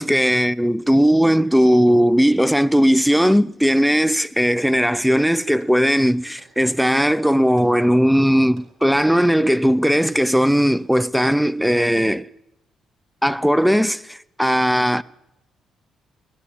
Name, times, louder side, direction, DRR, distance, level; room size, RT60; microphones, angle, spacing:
voice 1, 0.0-12.3 13.2-15.0, equal, ahead, 0.7 m, -17 dB
sound 1, 2.3-3.8 4.6-6.6 6.9-7.8 8.6-9.8 10.7-10.9, right 3 dB, 70° right, 5.1 m, -53 dB
20.0 x 14.0 x 9.9 m
cardioid pair, 90°, 0 cm